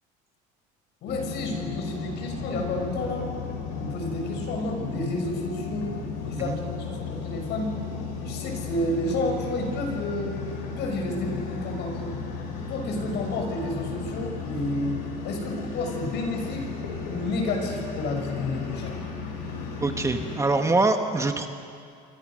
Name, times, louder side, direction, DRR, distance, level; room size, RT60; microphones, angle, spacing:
voice 1, 1.0-3.3 3.8-6.0 6.2-7.7 8.2-10.4 10.6-12.1 12.7-16.7 17.1-19.0, left 2 dB, 60° left, 3 dB, 6.6 m, -30 dB
sound 1, 1.1-20.4, left 5 dB, 80° left, 7.6 m, -34 dB
voice 2, 19.8-21.5, right 3 dB, 15° right, 5 dB, 1.4 m, -24 dB
27.5 x 25.5 x 6.5 m, 2.3 s
cardioid pair, 120°, 20 cm